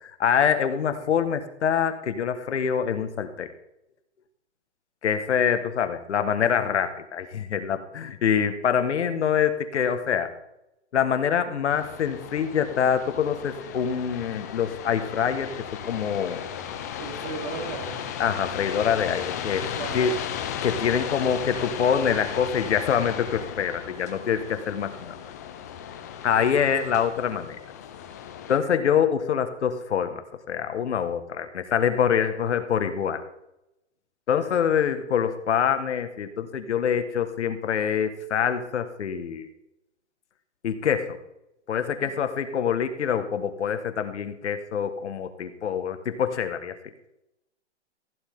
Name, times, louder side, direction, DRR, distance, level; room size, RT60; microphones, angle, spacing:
voice 1, 0.0-3.5 5.0-10.3 10.9-16.4 18.2-20.1 20.6-25.2 26.2-27.6 28.5-33.2 34.3-39.5 40.6-41.2 41.7-46.8, left 7 dB, 70° left, 9 dB, 1.6 m, -25 dB
sound 1, 11.7-28.6, left 9 dB, 15° left, 0.4 m, -36 dB
voice 2, 17.0-18.1 19.7-20.1, right 5 dB, 40° right, 1 dB, 3.6 m, -35 dB
15.5 x 9.9 x 3.7 m, 0.85 s
hypercardioid pair, 155°, 36 cm